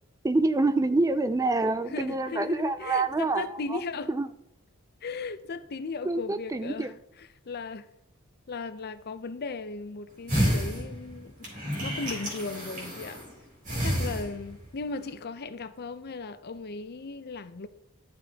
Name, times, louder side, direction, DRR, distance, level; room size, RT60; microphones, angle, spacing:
voice 1, 0.2-3.8 4.1-4.3 6.0-6.9, right 2 dB, 15° right, 0.3 m, -26 dB
voice 2, 1.9-4.1 5.0-7.9 8.5-11.5 11.8-13.2 13.8-17.7, left 4 dB, 50° left, 0.6 m, -37 dB
sound 1, 10.3-13.3 13.6-14.7 15.1-15.2, equal, 40° right, 3.7 m, -30 dB
11.5 x 6.9 x 2.8 m
head